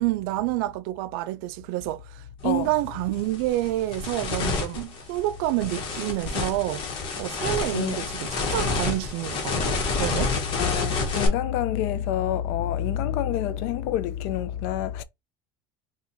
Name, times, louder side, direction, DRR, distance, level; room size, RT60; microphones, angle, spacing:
voice 1, 0.0-6.8 7.2-10.3, right 17 dB, 75° right, 0.4 m, -28 dB
sound 1, 2.4-2.6 3.1-11.3, left 4 dB, 45° left, 1.0 m, -29 dB
voice 2, 7.7-8.1 10.6-15.0, left 11 dB, 65° left, 0.4 m, -27 dB
4.4 x 2.3 x 2.6 m
supercardioid pair, 140°, 12 cm